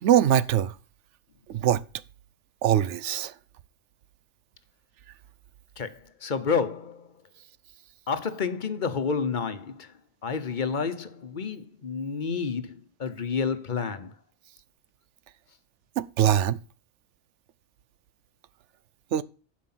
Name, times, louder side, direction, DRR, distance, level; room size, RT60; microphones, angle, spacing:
voice 1, 0.0-0.7 1.5-1.8 2.6-3.3 16.0-16.6 19.1-19.2, right 10 dB, 90° right, 1.0 m, -22 dB
voice 2, 5.8-7.1 8.1-9.9 10.2-14.1, left 5 dB, 45° left, 1.0 m, -30 dB
11.5 x 5.3 x 5.7 m
omnidirectional pair, 1.2 m